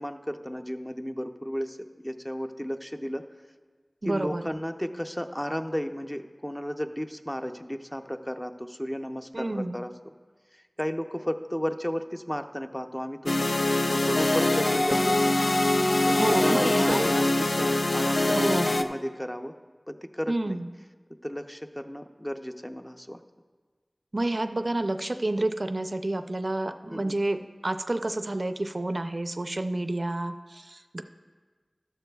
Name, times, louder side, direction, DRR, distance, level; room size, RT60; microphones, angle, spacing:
voice 1, 0.0-1.8 2.0-3.2 4.0-9.9 10.5-13.3 13.9-15.4 16.0-19.5 19.9-20.6 21.2-23.2 26.9-27.2, equal, 10° left, 7 dB, 0.6 m, -33 dB
voice 2, 4.0-4.4 9.3-9.8 16.2-17.0 18.3-18.7 20.3-20.7 24.1-31.0, right 2 dB, 60° right, 9 dB, 0.4 m, -29 dB
sound 1, 13.3-18.8, left 2 dB, 60° left, 0.5 m, -23 dB
13.0 x 11.5 x 2.3 m, 1.5 s
wide cardioid pair, 45°, 0 cm